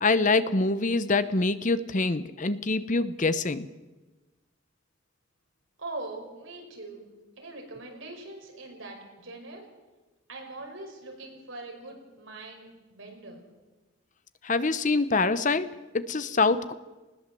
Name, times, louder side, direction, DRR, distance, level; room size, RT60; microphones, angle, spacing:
voice 1, 0.0-3.7 14.4-16.7, left 3 dB, 40° left, 13 dB, 0.9 m, -25 dB
voice 2, 5.8-7.1 7.4-9.7 10.3-13.4, right 2 dB, 75° right, 1 dB, 5.5 m, -42 dB
20.0 x 18.0 x 7.7 m, 1.2 s
head